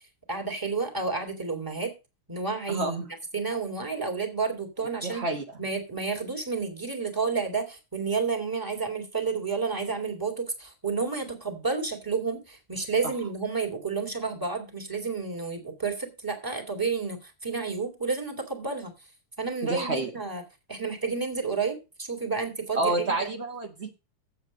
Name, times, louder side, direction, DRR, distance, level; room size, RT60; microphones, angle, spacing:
voice 1, 0.3-1.9 2.3-3.0 3.3-5.2 5.6-18.9 19.4-20.4 20.7-23.3, right 4 dB, 10° right, 3 dB, 1.7 m, -30 dB
voice 2, 2.7-3.0 5.0-5.4 19.6-20.1 22.7-23.9, right 2 dB, 90° right, 2 dB, 0.5 m, -28 dB
8.4 x 8.1 x 5.0 m, 0.28 s
omnidirectional pair, 3.3 m